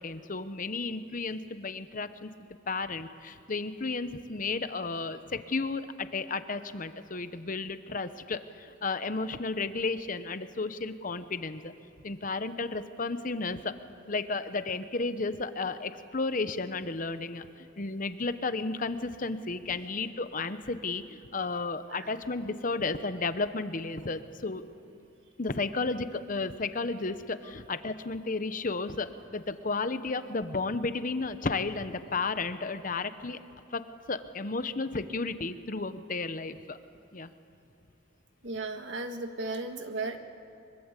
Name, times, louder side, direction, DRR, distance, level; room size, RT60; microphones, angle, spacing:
voice 1, 0.0-2.3 2.7-11.7 12.0-13.7 14.1-24.6 25.4-33.4 33.7-36.8 37.1-37.3, left 3 dB, 40° left, 11 dB, 0.9 m, -33 dB
voice 2, 38.4-40.2, right 2 dB, 65° right, 6 dB, 1.8 m, -35 dB
24.0 x 22.5 x 8.2 m, 2.7 s
head